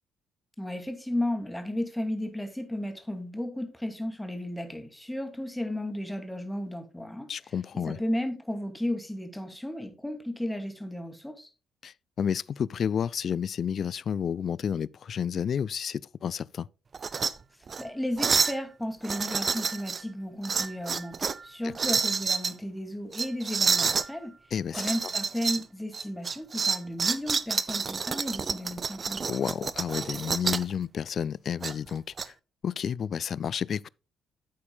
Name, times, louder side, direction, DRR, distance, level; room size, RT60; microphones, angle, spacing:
voice 1, 0.6-7.3 7.9-11.5 17.8-24.3 24.7-29.2, left 1 dB, 10° left, 2.4 m, -34 dB
voice 2, 7.3-8.0 11.8-16.7 24.5-24.9 29.3-32.3 32.6-33.9, left 8 dB, 55° left, 0.3 m, -31 dB
sound 1, 16.9-17.3 17.7-17.8 18.2-18.6 19.0-20.0 20.4-21.4 21.7-22.5 23.1-24.1 24.7-25.6 25.9-30.7 31.6-32.3, right 5 dB, 45° right, 0.5 m, -28 dB
11.0 x 8.6 x 2.3 m
hypercardioid pair, 45°, 0 cm